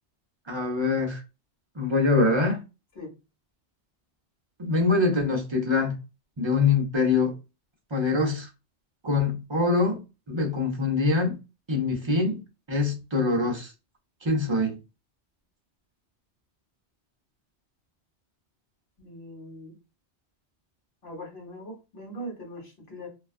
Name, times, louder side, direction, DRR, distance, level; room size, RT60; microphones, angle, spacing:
voice 1, 0.5-1.2 1.8-2.6 4.6-6.0 6.4-7.3 7.9-8.5 9.0-10.0 10.3-11.4 11.7-12.4 12.7-13.7 14.2-14.8, left 3 dB, 35° right, 0.5 m, -24 dB
voice 2, 19.0-19.7 21.0-23.1, equal, 65° left, 1.2 m, -41 dB
2.3 x 2.2 x 2.4 m
omnidirectional pair, 1.1 m